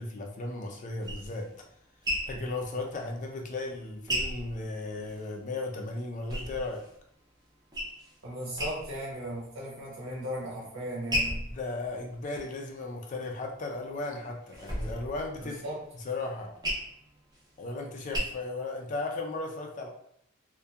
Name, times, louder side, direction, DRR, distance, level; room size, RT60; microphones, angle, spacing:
voice 1, 0.0-1.5 2.3-6.8 11.5-15.6 16.0-16.5 17.6-19.9, left 2 dB, 40° left, 2 dB, 0.3 m, -36 dB
sound 1, 0.6-5.4 5.7-7.0 7.4-8.2 8.5-9.2 9.6-10.2 10.7-13.4 13.9-18.2, equal, 20° right, 0.6 m, -36 dB
voice 2, 8.2-11.4 15.4-15.8, equal, 80° right, -4 dB, 1.1 m, -37 dB
2.6 x 2.2 x 2.3 m, 0.72 s
head